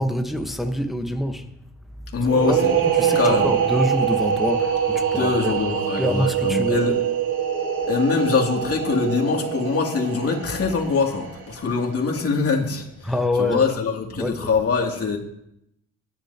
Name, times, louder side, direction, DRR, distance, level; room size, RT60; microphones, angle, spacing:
voice 1, 0.0-1.5 2.2-5.6 6.0-6.9 13.0-13.7 14.2-14.6, left 1 dB, ahead, 4 dB, 1.1 m, -26 dB
voice 2, 2.1-2.7 3.1-3.5 5.1-6.9 7.9-15.2, left 5 dB, 50° left, 0 dB, 2.7 m, -23 dB
sound 1, 2.2-11.8, right 8 dB, 85° right, 2.7 m, -24 dB
18.0 x 10.5 x 2.9 m, 0.80 s
cardioid pair, 90°, 30 cm